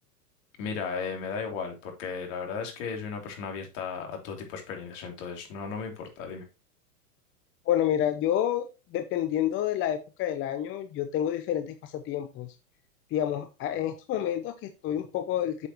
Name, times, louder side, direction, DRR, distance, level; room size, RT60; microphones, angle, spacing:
voice 1, 0.6-6.4, left 5 dB, 50° left, 3 dB, 3.1 m, -35 dB
voice 2, 7.7-12.5 13.1-15.7, left 11 dB, 25° left, 9 dB, 0.7 m, -29 dB
8.1 x 6.8 x 2.9 m, 0.29 s
hypercardioid pair, 115°, 47 cm